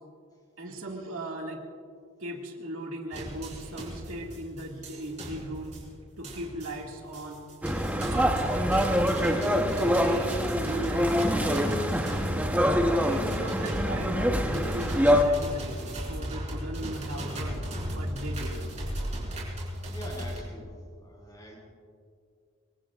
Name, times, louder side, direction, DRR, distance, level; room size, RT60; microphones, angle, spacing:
voice 1, 0.6-1.6 2.2-5.8 6.2-7.4 8.1-12.5 12.9-17.7 17.9-18.8, right 1 dB, 75° right, 0 dB, 2.2 m, -38 dB
sound 1, 3.1-20.4, equal, 30° right, 4.5 m, -36 dB
sound 2, 7.6-15.2, equal, 5° right, 1.0 m, -25 dB
voice 2, 19.8-20.7 21.0-21.6, equal, 20° left, -2 dB, 5.7 m, -43 dB
25.5 x 22.5 x 2.5 m, 2.2 s
head